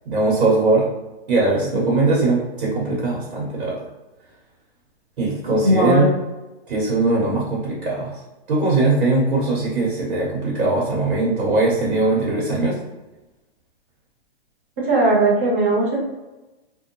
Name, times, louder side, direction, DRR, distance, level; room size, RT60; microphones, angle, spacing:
voice 1, 0.0-0.9 1.3-3.8 5.2-6.1 6.7-8.2 8.5-12.8, right 2 dB, 55° right, -4 dB, 1.0 m, -20 dB
voice 2, 5.6-6.1 14.8-16.0, right 2 dB, 15° right, -6 dB, 0.3 m, -18 dB
2.6 x 2.1 x 2.9 m, 1.1 s
hypercardioid pair, 155°, 31 cm